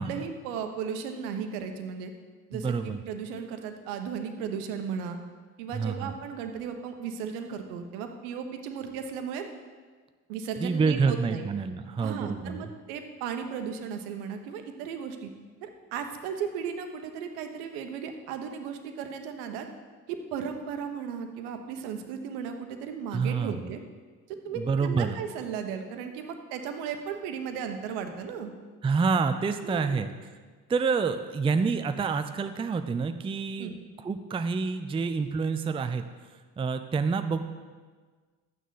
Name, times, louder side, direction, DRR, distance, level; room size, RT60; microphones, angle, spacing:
voice 1, 0.1-2.1 2.5-2.7 3.1-5.2 5.6-9.5 10.3-11.5 12.0-15.3 15.6-19.7 20.1-23.8 24.3-28.5 29.6-30.1 33.6-33.8, right 7 dB, 65° right, 6 dB, 1.2 m, -35 dB
voice 2, 2.5-3.0 5.7-6.1 10.6-12.7 23.1-23.7 24.5-25.2 28.8-30.1 30.7-33.7 34.0-36.0 36.6-37.4, right 5 dB, 10° right, 9 dB, 0.5 m, -28 dB
12.0 x 9.1 x 4.1 m, 1.4 s
figure-of-eight pair, 50°, 46 cm